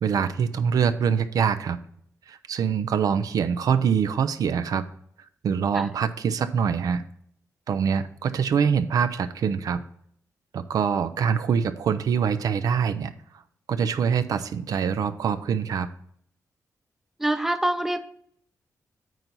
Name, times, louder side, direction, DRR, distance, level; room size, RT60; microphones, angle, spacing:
voice 1, 0.0-1.8 2.3-4.9 5.4-7.1 7.7-9.8 10.5-13.1 13.7-15.9, right 7 dB, 75° right, 12 dB, 0.5 m, -24 dB
voice 2, 17.2-18.0, right 1 dB, 5° right, 10 dB, 0.5 m, -25 dB
9.1 x 4.0 x 5.6 m, 0.66 s
wide cardioid pair, 140°, 6 cm